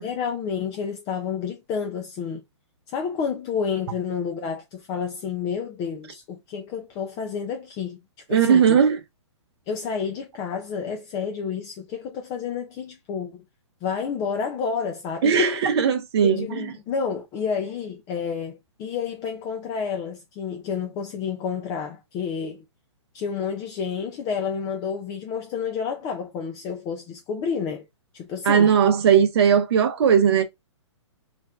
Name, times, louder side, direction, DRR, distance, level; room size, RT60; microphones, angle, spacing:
voice 1, 0.0-2.4 2.9-8.0 8.3-8.8 9.7-13.4 13.8-15.7 16.2-22.6 23.1-27.8 28.1-28.7, left 6 dB, 25° left, 0.4 m, -30 dB
voice 2, 8.3-9.0 15.2-16.7 28.5-30.4, right 7 dB, 60° right, 0.7 m, -18 dB
2.5 x 2.2 x 3.4 m
hypercardioid pair, 135°, 16 cm